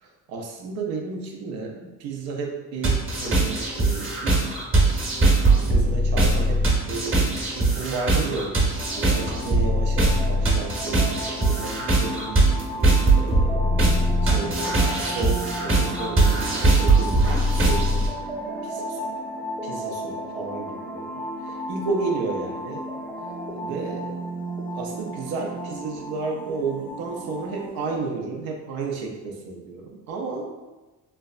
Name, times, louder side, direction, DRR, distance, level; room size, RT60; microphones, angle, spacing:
voice 1, 0.3-4.6 5.6-8.6 9.0-12.6 13.2-13.8 14.2-18.1 18.6-19.0 19.6-22.9 23.5-24.3 24.7-30.6, right 3 dB, 80° right, 0 dB, 0.6 m, -32 dB
sound 1, 2.8-18.1, right 2 dB, 35° right, 1.0 m, -21 dB
sound 2, 8.8-28.0, right 1 dB, 5° left, 0.4 m, -34 dB
3.2 x 2.1 x 2.4 m, 1.2 s
supercardioid pair, 75°, 35 cm